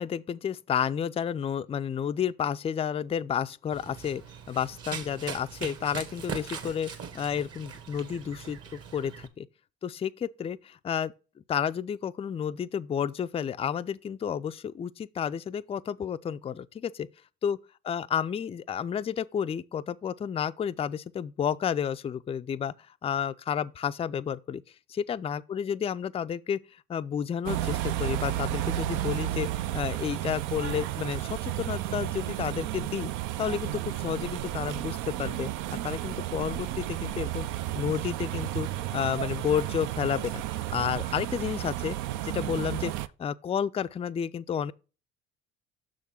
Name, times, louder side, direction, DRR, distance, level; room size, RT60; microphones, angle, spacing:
voice 1, 0.0-4.2 4.5-9.5 9.8-11.1 11.5-17.1 17.4-17.6 17.9-22.7 23.0-24.6 24.9-26.6 26.9-33.1 33.4-35.5 35.8-37.5 37.7-40.4 40.7-42.0 42.2-42.9 43.2-44.7, left 8 dB, 20° left, 0.3 m, -31 dB
Run, 3.7-9.3, right 6 dB, 50° right, 1.2 m, -41 dB
sound 1, 27.4-43.1, right 14 dB, 70° right, 0.5 m, -32 dB
6.3 x 3.7 x 5.6 m
hypercardioid pair, 60°, 32 cm